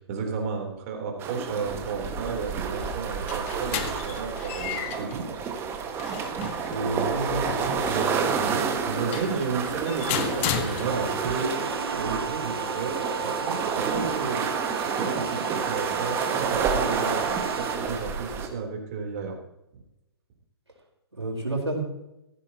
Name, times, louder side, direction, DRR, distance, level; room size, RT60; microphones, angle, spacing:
voice 1, 0.0-5.3 8.8-11.6 11.9-14.6 15.0-17.3 17.6-19.4, right 5 dB, 35° right, 1 dB, 3.7 m, -32 dB
sound 1, 1.2-18.5, right 6 dB, 15° right, 1.7 m, -29 dB
sound 2, 2.9-11.3, left 9 dB, 30° left, 1.3 m, -35 dB
voice 2, 6.7-8.6 21.1-21.8, right 2 dB, 80° right, 0 dB, 4.6 m, -31 dB
sound 3, 10.9-17.8, right 5 dB, 60° right, 1.5 m, -33 dB
17.0 x 15.0 x 3.0 m, 0.90 s
figure-of-eight pair, 125°, 14 cm